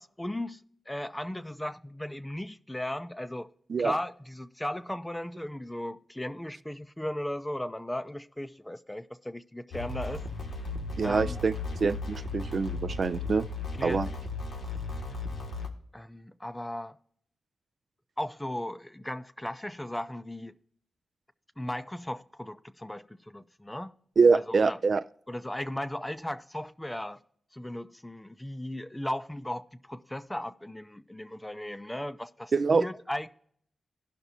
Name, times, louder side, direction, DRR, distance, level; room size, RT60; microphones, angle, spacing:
voice 1, 0.0-3.5 3.8-10.2 11.0-11.4 13.8-14.0 14.9-15.2 15.9-17.0 18.2-20.6 21.6-24.0 24.6-24.8 25.3-27.2 27.5-33.3, left 1 dB, 10° left, 0.5 m, -36 dB
sound 1, 9.7-15.7, left 3 dB, 85° left, 1.5 m, -36 dB
voice 2, 11.0-11.5 11.8-13.5 13.8-14.1 24.2-25.0 32.5-32.8, right 4 dB, 55° right, 0.3 m, -24 dB
17.0 x 6.0 x 2.7 m
wide cardioid pair, 105°, 0 cm